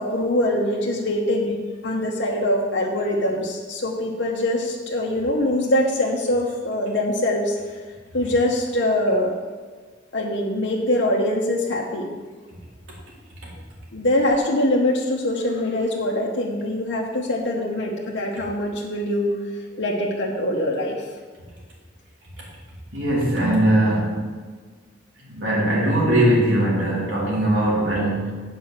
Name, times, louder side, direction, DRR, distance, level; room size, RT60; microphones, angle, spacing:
voice 1, 0.0-7.6 8.1-9.3 10.1-12.1 13.9-19.4 19.8-21.0, left 1 dB, 65° left, -3 dB, 1.1 m, -23 dB
voice 2, 22.9-24.3 25.2-28.3, right 1 dB, 75° right, -5 dB, 3.3 m, -20 dB
7.9 x 5.4 x 7.3 m, 1.5 s
head